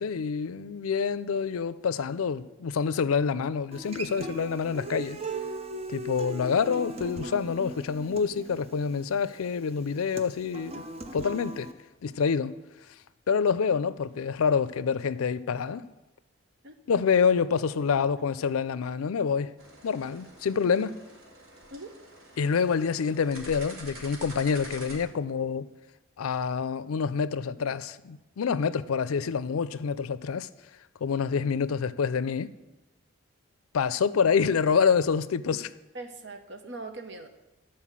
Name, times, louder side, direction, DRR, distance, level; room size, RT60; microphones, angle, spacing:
voice 1, 0.0-5.2 5.9-10.8 11.1-11.7 12.0-12.5 13.3-15.8 16.9-19.5 19.8-21.0 22.4-25.7 26.2-30.5 31.0-32.5 33.7-35.7, left 6 dB, 90° left, 0.4 m, -27 dB
Human voice / Acoustic guitar, 3.7-11.7, right 2 dB, 30° right, 0.5 m, -38 dB
sound 1, 19.6-25.0, right 1 dB, 85° right, 1.9 m, -46 dB
voice 2, 35.9-37.3, right 2 dB, 55° right, 0.8 m, -41 dB
12.0 x 4.3 x 7.3 m
head